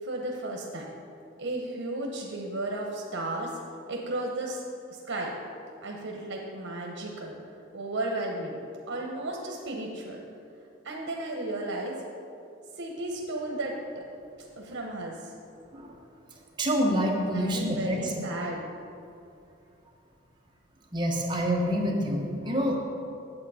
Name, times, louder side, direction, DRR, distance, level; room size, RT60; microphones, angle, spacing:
voice 1, 0.0-0.9 1.4-3.5 3.9-4.6 4.9-5.3 5.8-7.3 7.7-8.6 8.9-10.2 10.8-12.0 12.8-14.0 14.6-15.3 17.3-18.6, right 2 dB, 80° right, 0 dB, 1.0 m, -34 dB
voice 2, 16.6-18.1 20.9-22.8, equal, 25° right, -2 dB, 1.2 m, -27 dB
8.6 x 7.3 x 4.9 m, 2.6 s
head